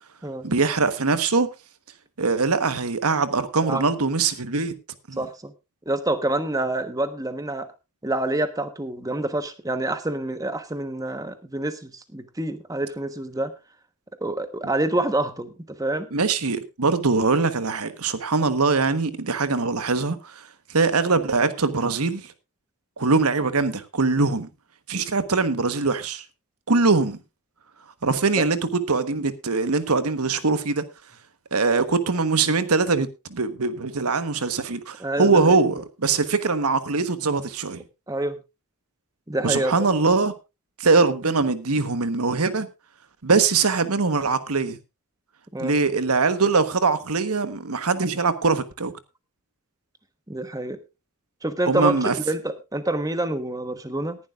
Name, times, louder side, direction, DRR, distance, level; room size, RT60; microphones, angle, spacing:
voice 1, 0.4-1.5 2.2-4.8 5.1-5.2 16.1-22.3 23.0-24.5 24.9-26.2 26.7-27.2 28.0-30.9 31.5-37.8 39.4-40.3 40.8-42.7 43.2-44.8 45.6-48.9 51.7-52.1, right 4 dB, 80° right, 1.2 m, -22 dB
voice 2, 5.2-5.5 5.9-7.7 8.0-13.5 14.2-16.1 35.0-35.6 38.1-38.4 39.3-39.7 45.5-45.8 50.3-50.8 51.4-54.2, right 2 dB, 15° right, 1.2 m, -27 dB
19.0 x 11.0 x 2.5 m
head